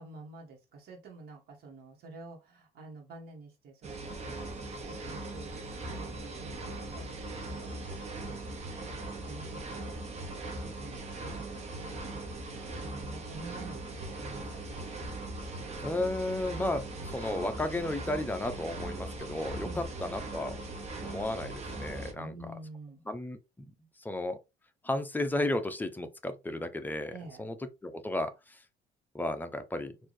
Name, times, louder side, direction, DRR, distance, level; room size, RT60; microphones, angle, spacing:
voice 1, 0.0-8.9 9.2-10.0 10.6-11.4 11.8-15.1 19.6-19.9 22.1-23.0 27.1-27.5, right 3 dB, 65° right, 1.4 m, -49 dB
sound 1, 3.8-22.1, right 2 dB, 40° right, 1.0 m, -40 dB
voice 2, 15.7-20.6 21.0-22.3 23.1-23.4 24.0-24.4 24.8-27.5 27.8-28.6 29.1-29.9, left 1 dB, 10° left, 0.6 m, -33 dB
4.0 x 2.6 x 3.1 m
cardioid pair, 110°, 17 cm